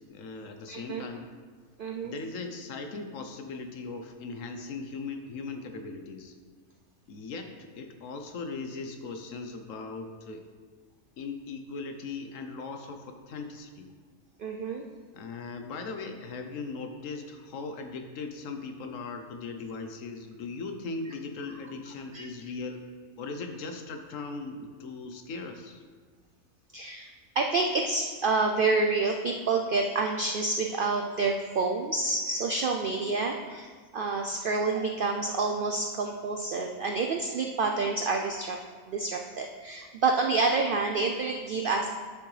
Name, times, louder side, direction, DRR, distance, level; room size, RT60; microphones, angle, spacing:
voice 1, 0.1-1.3 2.0-6.3 7.1-10.5 11.2-13.9 15.1-22.9 23.2-25.8, left 4 dB, 65° left, 6 dB, 1.1 m, -39 dB
voice 2, 0.7-1.1 1.8-2.1 14.4-14.9 22.1-22.2 26.7-27.1 27.4-38.6 38.9-41.9, right 3 dB, 85° right, 3 dB, 0.4 m, -28 dB
9.7 x 6.0 x 3.3 m, 1.5 s
omnidirectional pair, 1.5 m